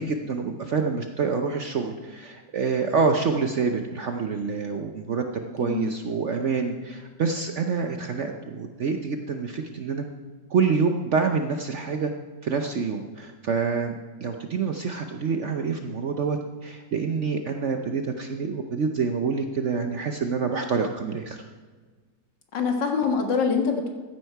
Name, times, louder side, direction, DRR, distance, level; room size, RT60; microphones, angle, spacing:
voice 1, 0.0-5.2 5.5-10.1 10.5-12.1 12.4-21.4, right 5 dB, 60° right, 5 dB, 0.8 m, -27 dB
voice 2, 5.6-6.0 6.8-6.9 22.5-23.9, left 5 dB, 75° left, 3 dB, 2.1 m, -25 dB
15.0 x 9.4 x 4.6 m, 1.4 s
omnidirectional pair, 2.0 m